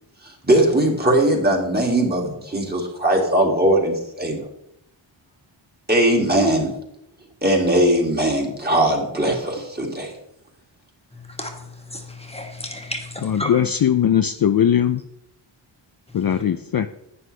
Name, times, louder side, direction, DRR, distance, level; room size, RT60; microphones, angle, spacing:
voice 1, 0.4-4.4 5.9-6.7 7.4-10.1, right 1 dB, 20° right, 0 dB, 2.3 m, -19 dB
voice 2, 11.1-13.7 16.1-16.2, left 1 dB, 10° left, 2 dB, 1.6 m, -33 dB
voice 3, 13.2-15.0 16.1-16.9, left 9 dB, 50° left, 9 dB, 0.5 m, -19 dB
11.0 x 9.4 x 3.3 m, 0.79 s
wide cardioid pair, 130°, 48 cm